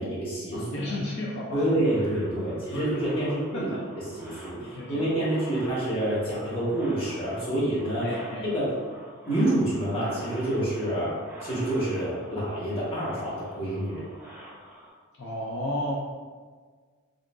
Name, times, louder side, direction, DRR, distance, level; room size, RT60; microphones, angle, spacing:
voice 1, 0.0-0.7 1.5-3.7 4.2-8.1 8.5-8.7 9.3-11.2 11.4-14.0, right 1 dB, 25° left, -8 dB, 1.0 m, -27 dB
voice 2, 0.5-3.8 4.6-5.1 8.0-8.5 15.2-15.9, left 1 dB, 55° left, -5 dB, 0.4 m, -34 dB
sound 1, 1.8-14.9, equal, 10° right, 0.7 m, -47 dB
3.8 x 2.4 x 2.2 m, 1.5 s
head